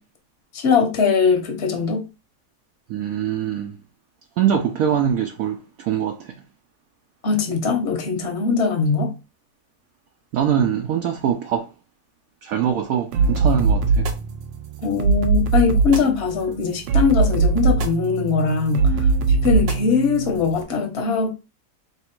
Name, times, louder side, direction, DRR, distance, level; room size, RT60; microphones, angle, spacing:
voice 1, 0.5-2.0 7.2-9.1 14.8-21.3, left 5 dB, 40° left, 1.1 m, -21 dB
voice 2, 2.9-3.8 4.4-6.3 10.3-11.7 12.4-14.1, right 9 dB, 70° right, 0.8 m, -23 dB
sound 1, 13.1-20.6, right 4 dB, 90° right, 1.3 m, -21 dB
3.2 x 3.1 x 4.4 m
omnidirectional pair, 1.9 m